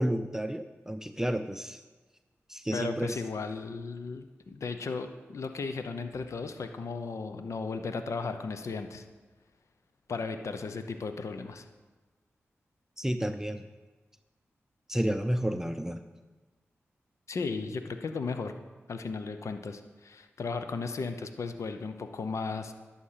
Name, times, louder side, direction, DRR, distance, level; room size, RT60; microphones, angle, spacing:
voice 1, 0.0-1.8 2.5-3.2 13.0-13.7 14.9-16.0, equal, 10° right, 8 dB, 0.6 m, -31 dB
voice 2, 2.7-9.0 10.1-11.6 17.3-18.5 18.9-22.7, left 4 dB, 70° left, 8 dB, 0.7 m, -35 dB
11.0 x 7.3 x 5.8 m, 1.3 s
cardioid pair, 40°, 5 cm